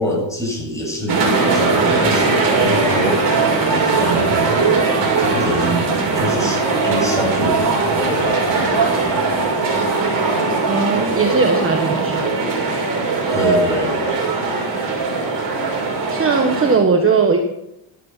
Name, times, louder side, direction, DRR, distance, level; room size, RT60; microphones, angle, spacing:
voice 1, 0.0-3.2 4.0-4.8 5.2-9.2 13.3-14.1, equal, 5° left, -2 dB, 7.3 m, -25 dB
sound 1, 1.1-16.8, right 3 dB, 50° right, 6.7 m, -19 dB
voice 2, 10.7-12.3 16.1-17.4, right 4 dB, 30° right, 3 dB, 1.4 m, -18 dB
14.0 x 12.0 x 5.8 m, 0.83 s
cardioid pair, 140°, 45 cm